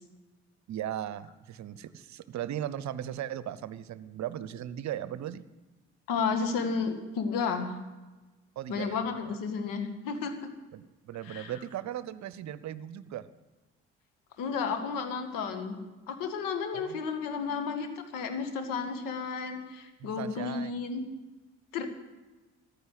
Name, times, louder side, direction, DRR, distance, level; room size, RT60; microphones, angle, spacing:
voice 1, 0.7-5.4 8.6-9.4 10.7-13.3 16.7-17.0 20.0-20.7, right 11 dB, 55° right, 16 dB, 0.8 m, -37 dB
voice 2, 6.1-7.7 8.7-10.3 11.2-11.5 14.4-15.8 16.1-21.0 21.7-21.9, left 5 dB, 70° left, 7 dB, 1.9 m, -32 dB
15.0 x 10.5 x 8.2 m, 1.2 s
hypercardioid pair, 45°, 35 cm